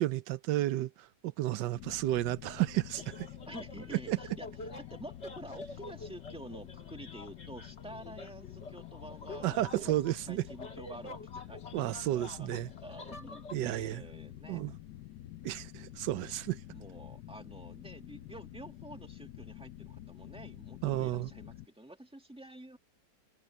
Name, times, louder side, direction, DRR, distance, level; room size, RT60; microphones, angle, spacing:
voice 1, 0.0-3.3 3.9-4.2 9.4-10.4 11.7-12.7 13.5-14.0 14.5-14.7 15.4-16.6 20.8-21.3, right 15 dB, 90° right, 1.3 m, -32 dB
sound 1, 1.7-21.7, left 13 dB, 75° left, 1.3 m, -48 dB
sound 2, 2.9-13.6, left 2 dB, 40° left, 1.8 m, -48 dB
voice 2, 3.5-4.5 4.8-9.9 10.3-11.6 12.1-12.5 12.8-14.7 16.7-22.8, right 1 dB, 5° right, 2.1 m, -49 dB
omnidirectional pair, 1.8 m